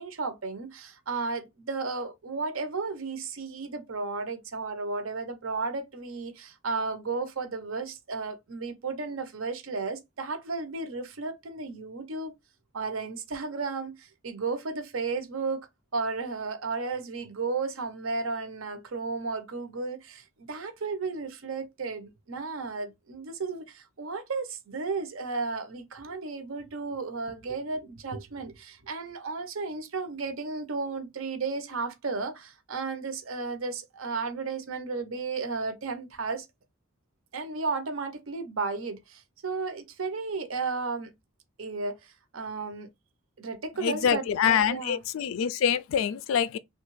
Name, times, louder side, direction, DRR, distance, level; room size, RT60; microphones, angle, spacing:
voice 1, 0.0-12.3 12.7-15.6 15.9-36.5 37.3-41.1 41.6-42.9 43.4-45.0, right 4 dB, 75° right, 0.7 m, -34 dB
voice 2, 43.8-46.6, left 8 dB, 70° left, 0.3 m, -25 dB
3.1 x 2.3 x 3.1 m
head